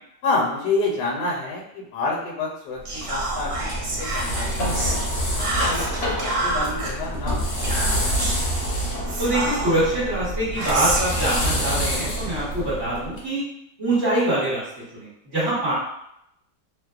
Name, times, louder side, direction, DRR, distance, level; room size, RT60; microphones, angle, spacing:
voice 1, 0.2-3.5 3.8-5.0 5.4-7.9, left 3 dB, 75° left, -3 dB, 1.2 m, -28 dB
sound 1, 2.8-13.2, equal, 55° left, 0.7 m, -27 dB
Whispering, 2.9-5.0 5.4-6.9 7.6-8.5 9.1-10.0 10.6-12.4, right 2 dB, 70° right, 1.2 m, -29 dB
voice 2, 9.2-13.4 13.8-14.6 14.9-15.7, right 1 dB, 50° right, -10 dB, 1.3 m, -24 dB
2.9 x 2.0 x 2.3 m, 0.78 s
omnidirectional pair, 1.9 m